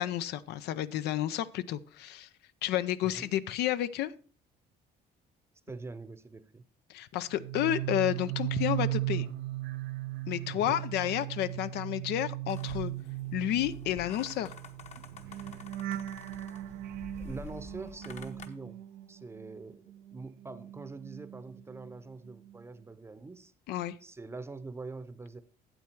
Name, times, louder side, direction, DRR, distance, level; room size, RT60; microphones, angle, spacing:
voice 1, 0.0-2.3 2.6-4.1 6.9-9.3 10.3-12.9 13.3-14.5 23.7-24.0, left 12 dB, 75° left, 0.5 m, -31 dB
voice 2, 5.7-6.6 10.5-10.8 17.2-18.8 19.1-19.8 20.1-23.5 24.0-25.4, right 3 dB, 15° right, 0.7 m, -44 dB
sound 1, 7.3-19.6 19.9-22.0 22.3-22.6, right 16 dB, 80° right, 0.6 m, -37 dB
sound 2, 12.5-18.5, left 5 dB, 40° left, 1.0 m, -49 dB
8.9 x 7.6 x 4.5 m
cardioid pair, 110°, 17 cm